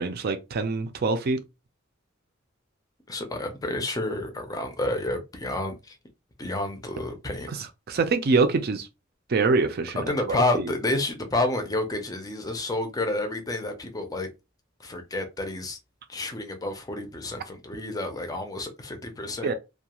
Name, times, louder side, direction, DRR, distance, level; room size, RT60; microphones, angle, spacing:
voice 1, 0.0-1.4 7.5-8.9 9.3-10.4 19.4-19.5, right 4 dB, 50° right, 0.4 m, -25 dB
voice 2, 3.1-6.0 6.4-7.5 10.0-14.3 14.8-15.8 16.1-19.5, left 2 dB, 20° left, 0.5 m, -29 dB
2.3 x 2.3 x 2.9 m
head